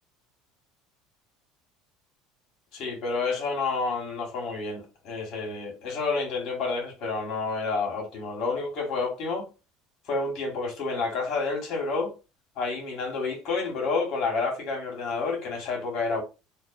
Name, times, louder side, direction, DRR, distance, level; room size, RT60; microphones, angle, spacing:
voice 1, 2.7-9.5 10.1-12.1 12.6-16.2, left 4 dB, 60° left, 1.7 m, -29 dB
3.3 x 2.5 x 2.7 m
supercardioid pair, 95°, 0 cm